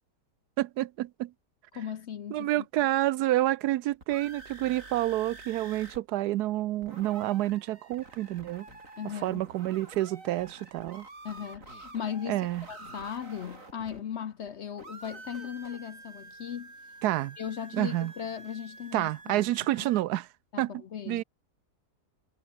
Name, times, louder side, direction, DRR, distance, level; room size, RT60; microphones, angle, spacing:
voice 1, 0.6-1.3 2.3-8.7 9.2-11.1 12.3-12.6 17.0-17.4 17.7-18.1 18.9-20.3 20.6-20.7 21.1-21.2, right 15 dB, 80° right, 1.1 m, -28 dB
voice 2, 1.7-2.9 9.0-9.4 11.2-12.4 12.7-16.7 17.4-19.4 19.8-19.9 20.5-21.2, left 8 dB, 55° left, 0.9 m, -38 dB
sound 1, 3.8-6.0 6.3-6.4 6.6-14.5 14.8-20.0, right 2 dB, 55° right, 4.7 m, -48 dB
sound 2, 8.4-8.9 10.4-10.6 11.4-11.9 12.9-13.1 13.9-14.1 15.0-15.8, left 2 dB, 85° left, 8.5 m, -54 dB
omnidirectional pair, 1.7 m